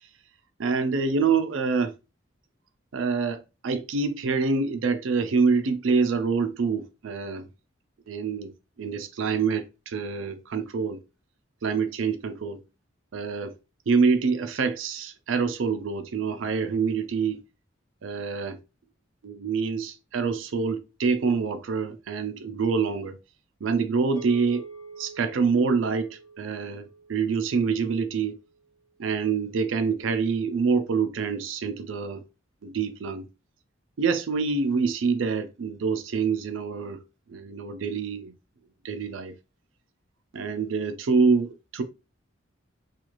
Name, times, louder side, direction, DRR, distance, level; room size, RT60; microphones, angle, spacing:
voice 1, 0.6-1.9 2.9-7.5 8.1-8.5 8.8-11.0 11.6-12.6 13.1-13.6 13.9-17.4 18.0-18.6 19.2-23.2 23.6-24.6 25.0-28.4 29.0-32.2 32.6-33.3 34.0-37.0 37.3-38.3 38.8-39.3 40.3-41.8, right 5 dB, 80° right, 0.4 m, -26 dB
sound 1, 24.2-28.7, right 4 dB, 80° left, 1.2 m, -46 dB
2.4 x 2.4 x 2.9 m
head